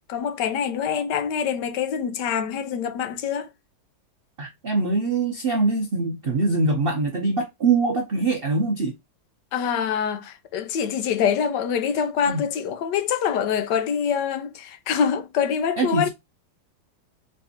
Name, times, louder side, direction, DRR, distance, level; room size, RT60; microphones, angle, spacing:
voice 1, 0.1-3.5 9.5-16.1, left 7 dB, 75° left, 1.2 m, -25 dB
voice 2, 4.4-9.0 12.3-12.5 15.8-16.1, right 3 dB, 70° right, 0.5 m, -23 dB
4.3 x 3.2 x 2.8 m
omnidirectional pair, 2.0 m